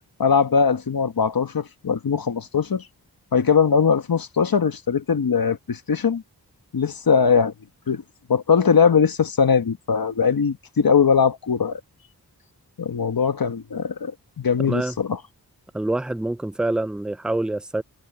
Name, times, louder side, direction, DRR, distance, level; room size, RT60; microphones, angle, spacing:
voice 1, 0.2-2.8 3.3-6.2 6.7-7.5 7.9-8.0 8.3-11.8 12.8-15.2, left 6 dB, 65° left, 1.3 m, -20 dB
voice 2, 14.6-15.0 15.7-17.8, right 2 dB, ahead, 0.4 m, -26 dB
wide cardioid pair, 70°, 38 cm